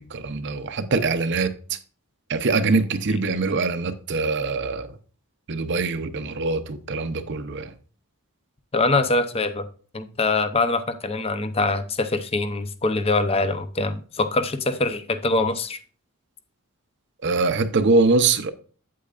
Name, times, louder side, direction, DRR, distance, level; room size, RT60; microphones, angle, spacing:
voice 1, 0.0-1.8 2.3-4.9 5.5-7.7 17.2-18.5, right 3 dB, 55° right, 0.7 m, -23 dB
voice 2, 8.7-9.7 9.9-15.8, left 3 dB, 25° left, 0.7 m, -23 dB
8.6 x 8.5 x 2.5 m
head